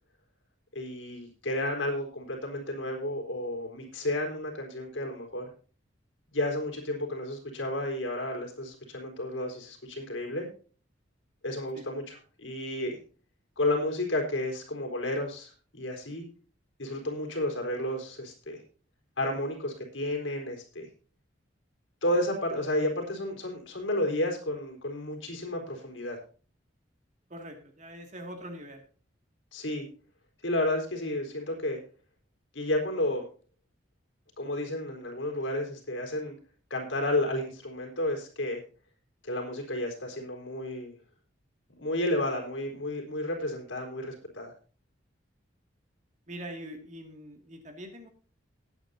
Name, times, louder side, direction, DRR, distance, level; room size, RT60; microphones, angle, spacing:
voice 1, 0.7-5.5 6.3-10.5 11.4-13.0 13.6-16.2 16.8-18.6 19.2-20.9 22.0-26.2 29.5-29.9 30.4-31.8 32.5-33.2 34.4-36.3 36.7-38.6 39.2-40.9 41.8-44.5, left 1 dB, 80° left, 2 dB, 4.2 m, -32 dB
voice 2, 27.3-28.8 46.3-48.1, equal, 40° right, 4 dB, 2.3 m, -43 dB
19.0 x 8.6 x 2.8 m, 0.39 s
head